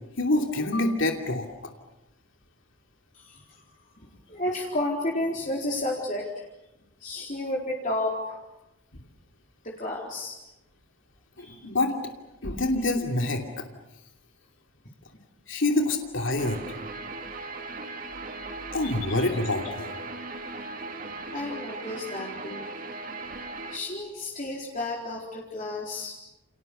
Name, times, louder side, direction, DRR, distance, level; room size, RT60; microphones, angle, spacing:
voice 1, 0.2-1.5 11.4-11.9 12.4-13.6 15.5-16.6 18.7-19.9, left 2 dB, 65° left, 2 dB, 2.9 m, -26 dB
voice 2, 3.1-6.5 7.0-8.4 9.6-10.3 11.4-11.6 21.0-22.7 23.7-26.1, left 1 dB, 40° left, -3 dB, 4.1 m, -32 dB
Guitar, 16.4-23.8, right 3 dB, 40° right, 2.3 m, -38 dB
29.5 x 29.5 x 6.8 m, 0.96 s
head